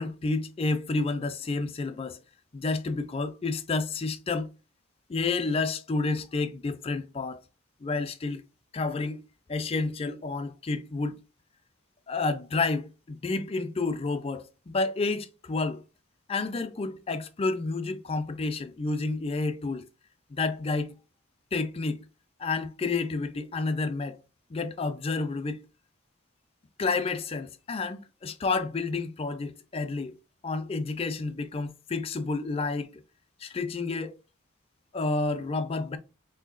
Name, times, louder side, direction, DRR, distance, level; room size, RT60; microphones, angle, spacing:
voice 1, 0.0-2.2 2.5-4.5 5.1-7.4 7.8-8.4 8.7-9.2 9.5-11.2 12.1-15.8 16.3-19.9 20.3-21.0 21.5-22.0 22.4-24.2 24.5-25.6 26.8-30.1 30.4-33.0 33.4-34.2 34.9-36.0, left 3 dB, 30° left, 0.4 m, -30 dB
3.0 x 2.8 x 3.7 m
head